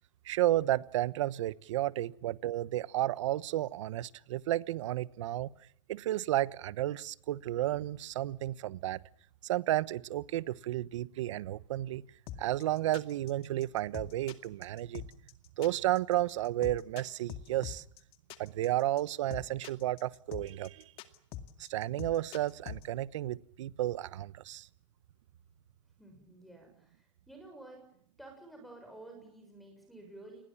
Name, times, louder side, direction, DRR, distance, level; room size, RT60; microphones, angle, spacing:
voice 1, 0.2-5.5 5.9-9.0 9.4-12.0 12.4-15.0 15.6-17.8 18.4-20.9 21.6-24.7, right 14 dB, 75° right, 1.1 m, -32 dB
sound 1, 12.3-22.8, left 11 dB, 35° left, 2.3 m, -44 dB
voice 2, 26.0-27.9 28.2-30.4, right 2 dB, ahead, 6.8 m, -51 dB
29.0 x 21.0 x 7.2 m
supercardioid pair, 150°, 16 cm